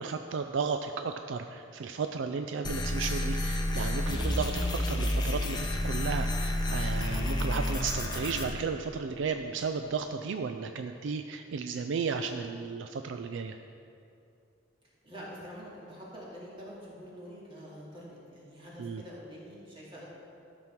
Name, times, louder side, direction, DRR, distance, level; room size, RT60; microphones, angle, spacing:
voice 1, 0.0-13.6 18.8-19.0, right 5 dB, 65° right, 7 dB, 0.4 m, -34 dB
sound 1, 2.6-8.5, left 1 dB, 20° left, 0.8 m, -30 dB
voice 2, 15.0-20.1, equal, 25° right, -6 dB, 2.3 m, -46 dB
12.5 x 6.1 x 4.5 m, 2.6 s
head